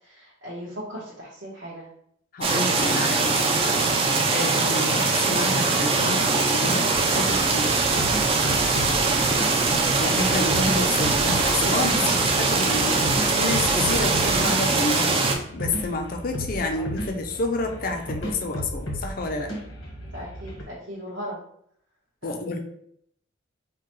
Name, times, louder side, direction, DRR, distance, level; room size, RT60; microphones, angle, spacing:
voice 1, 0.0-1.9 16.7-16.9 20.0-21.4 22.2-22.4, equal, 70° right, -8 dB, 1.2 m, -38 dB
voice 2, 2.3-3.5 4.3-6.3 6.5-7.8 10.0-13.0 13.3-15.2 15.5-19.5 22.2-22.6, left 2 dB, 45° left, 4 dB, 0.5 m, -29 dB
sound 1, 2.4-15.3, right 3 dB, 30° right, 0.4 m, -22 dB
sound 2, 6.9-20.6, equal, 85° left, 1.3 m, -35 dB
sound 3, 7.2-14.9, right 2 dB, 85° right, 0.7 m, -39 dB
4.6 x 2.2 x 3.1 m, 0.68 s
head